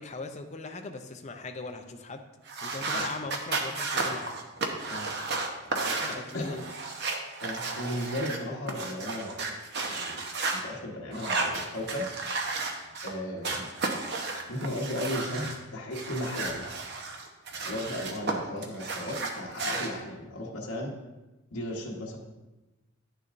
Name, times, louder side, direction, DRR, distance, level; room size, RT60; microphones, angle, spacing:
voice 1, 0.0-2.2 2.6-4.3 5.7-6.7 8.5-8.6 19.1-19.3, left 3 dB, 30° left, 5 dB, 0.5 m, -40 dB
sound 1, 2.5-10.6 11.1-13.1 13.4-15.6 15.9-18.3 18.6-19.9, right 3 dB, 50° right, 0.8 m, -33 dB
voice 2, 6.1-6.5 7.4-9.5 9.9-10.2 10.5-12.1 13.0-13.7 14.5-16.7 17.7-20.9 21.5-22.2, left 1 dB, 75° left, -3 dB, 1.2 m, -35 dB
10.0 x 6.8 x 2.5 m, 1.1 s
head